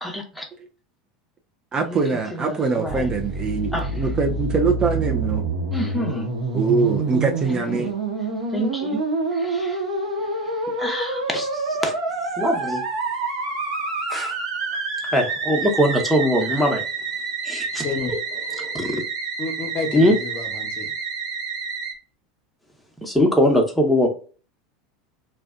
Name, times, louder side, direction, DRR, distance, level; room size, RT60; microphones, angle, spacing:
voice 1, 0.0-0.5 1.9-2.0 2.3-3.1 3.7-3.9 5.7-6.3 7.7-7.9 8.5-9.0 9.3-9.8 10.8-11.9 12.4-12.8 14.1-14.3 15.0-16.8 17.4-18.2 18.5-19.0 19.9-20.2 23.0-24.1, equal, ahead, 0.9 m, -23 dB
voice 2, 1.7-5.5 6.5-7.9, right 4 dB, 30° right, 0.4 m, -23 dB
Musical instrument, 2.9-21.9, right 3 dB, 70° right, 0.8 m, -27 dB
voice 3, 17.8-18.1 19.4-20.9, left 4 dB, 40° left, 0.8 m, -30 dB
2.6 x 2.2 x 2.4 m
hypercardioid pair, 90°, 3 cm